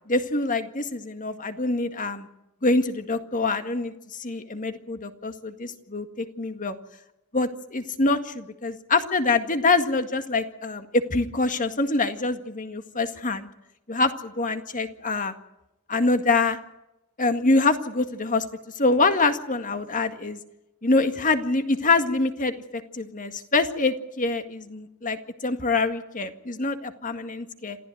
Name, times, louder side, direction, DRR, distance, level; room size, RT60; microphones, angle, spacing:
voice 1, 0.1-2.3 2.6-3.9 4.2-6.8 7.3-13.5 13.9-15.3 15.9-16.6 17.2-18.5 18.8-20.4 20.8-27.8, left 3 dB, 35° left, 8 dB, 1.9 m, -25 dB
27.5 x 15.0 x 9.3 m, 0.92 s
head